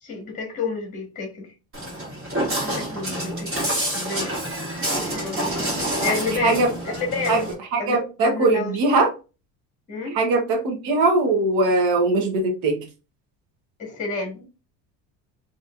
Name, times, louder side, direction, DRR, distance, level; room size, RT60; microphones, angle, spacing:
voice 1, 0.0-1.5 2.6-3.5 3.9-4.3 4.6-4.7 5.1-7.5 7.8-8.7 9.9-10.2 13.8-14.4, left 4 dB, 20° left, 1 dB, 1.5 m, -30 dB
Walk footsteps, 1.7-7.5, right 1 dB, 35° right, 2.2 m, -27 dB
voice 2, 6.0-6.7 7.3-7.4 7.7-9.1 10.1-12.9, right 2 dB, 65° right, 2 dB, 1.1 m, -21 dB
4.1 x 3.1 x 2.5 m, 0.31 s
cardioid pair, 155°, 39 cm